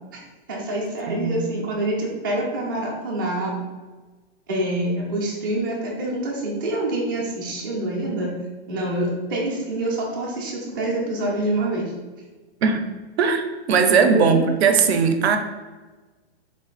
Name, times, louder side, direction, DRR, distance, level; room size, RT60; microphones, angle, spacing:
voice 1, 0.5-3.5 4.5-8.3 8.7-11.9 14.1-14.4, right 1 dB, 20° right, -4 dB, 0.4 m, -26 dB
voice 2, 1.1-1.7 12.6-12.8 13.2-15.4, right 5 dB, 70° right, 6 dB, 0.6 m, -19 dB
3.7 x 2.4 x 3.8 m, 1.3 s
hypercardioid pair, 180°, 33 cm